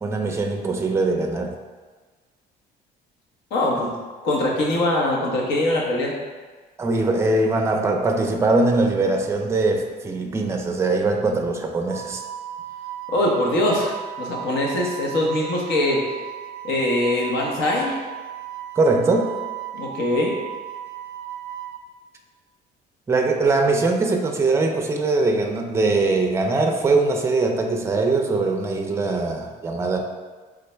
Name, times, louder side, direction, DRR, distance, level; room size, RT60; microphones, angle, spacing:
voice 1, 0.0-1.6 6.8-12.2 18.8-19.4 23.1-30.0, right 3 dB, 15° right, 3 dB, 0.4 m, -21 dB
voice 2, 3.5-3.9 4.2-6.1 13.1-16.0 16.6-18.0 19.7-20.4, left 1 dB, 85° left, -2 dB, 1.1 m, -22 dB
Wind instrument woodwind instrument, 11.9-21.8, right 11 dB, 80° right, 0.4 m, -35 dB
4.0 x 3.7 x 3.3 m, 1.4 s
cardioid pair, 155°, 18 cm